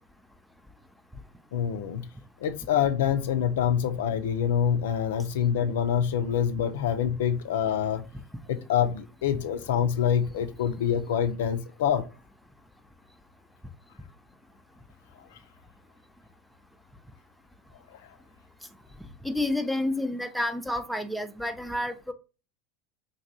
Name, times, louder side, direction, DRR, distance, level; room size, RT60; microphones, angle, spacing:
voice 1, 1.5-2.0 2.4-8.0 8.5-12.1, left 8 dB, 75° left, 0.4 m, -26 dB
voice 2, 19.2-22.1, left 1 dB, ahead, 0.4 m, -29 dB
2.9 x 2.6 x 2.6 m
hypercardioid pair, 80°, 0 cm